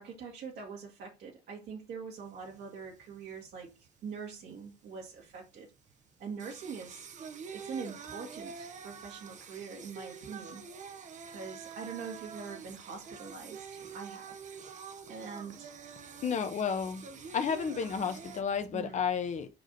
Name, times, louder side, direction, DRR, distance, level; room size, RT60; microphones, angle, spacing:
voice 1, 0.0-3.8 4.0-5.7 6.2-7.1 7.5-10.6 11.3-14.4 15.1-15.7 18.7-19.0, right 5 dB, 70° right, 1.8 m, -43 dB
Singing, 2.2-18.4, right 6 dB, 45° right, 0.9 m, -47 dB
voice 2, 16.2-17.0 17.3-19.5, left 6 dB, 45° left, 1.1 m, -31 dB
5.0 x 4.9 x 4.0 m
cardioid pair, 110°, 17 cm